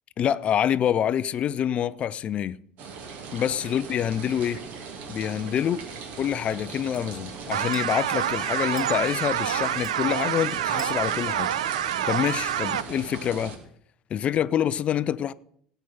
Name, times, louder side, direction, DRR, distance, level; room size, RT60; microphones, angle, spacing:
voice 1, 0.2-2.6 3.3-4.6 5.1-5.9 6.2-11.5 11.8-13.6 14.1-15.3, left 9 dB, 35° left, 0.5 m, -26 dB
sound 1, 2.8-13.6, right 5 dB, 50° right, 2.0 m, -39 dB
sound 2, 4.7-12.5, right 2 dB, 5° right, 3.8 m, -53 dB
sound 3, 7.5-12.8, right 10 dB, 70° right, 0.5 m, -27 dB
17.5 x 8.0 x 4.3 m
figure-of-eight pair, 70°, 4 cm